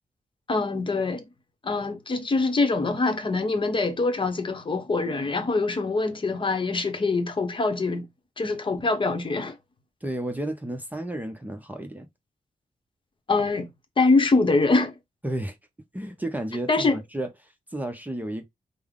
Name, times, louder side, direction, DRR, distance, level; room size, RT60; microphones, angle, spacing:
voice 1, 0.5-1.3 1.6-8.1 8.4-9.6 13.3-13.7 14.0-14.9 16.7-17.0, left 3 dB, 35° left, 0.9 m, -24 dB
voice 2, 10.0-12.1 15.2-15.6 15.9-18.4, right 1 dB, 10° right, 0.7 m, -32 dB
5.4 x 2.0 x 3.6 m
wide cardioid pair, 120°, 14 cm